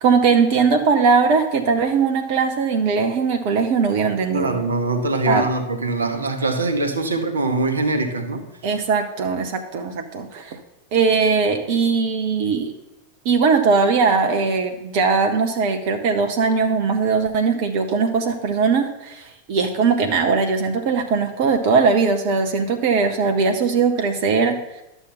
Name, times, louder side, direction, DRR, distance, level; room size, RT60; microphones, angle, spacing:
voice 1, 0.0-4.6 5.3-5.5 8.6-10.6 10.9-12.7 13.2-24.8, right 5 dB, 45° right, 5 dB, 0.8 m, -20 dB
voice 2, 4.3-8.4, right 2 dB, 75° right, 7 dB, 1.0 m, -23 dB
11.5 x 7.0 x 4.1 m, 0.91 s
figure-of-eight pair, 90°, 0 cm